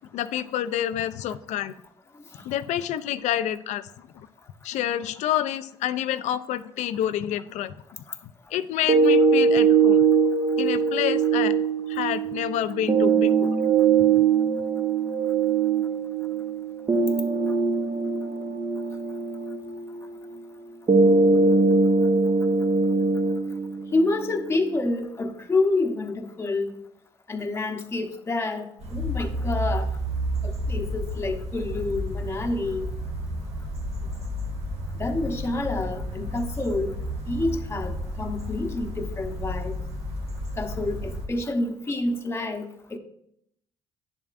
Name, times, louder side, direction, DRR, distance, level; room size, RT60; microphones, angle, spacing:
voice 1, 0.1-1.7 2.4-4.3 4.6-7.8 8.5-10.0 10.6-11.5 11.9-13.6, left 11 dB, 70° left, 12 dB, 0.5 m, -28 dB
sound 1, 8.9-24.9, right 5 dB, 35° right, 1.0 m, -22 dB
voice 2, 23.9-26.7 27.3-29.9 30.4-32.9 35.0-36.9 37.3-39.8 40.6-43.0, left 2 dB, 20° left, 3 dB, 0.9 m, -28 dB
sound 2, 28.8-41.3, equal, 55° right, 1.8 m, -31 dB
9.9 x 7.2 x 2.5 m, 0.73 s
supercardioid pair, 75°, 12 cm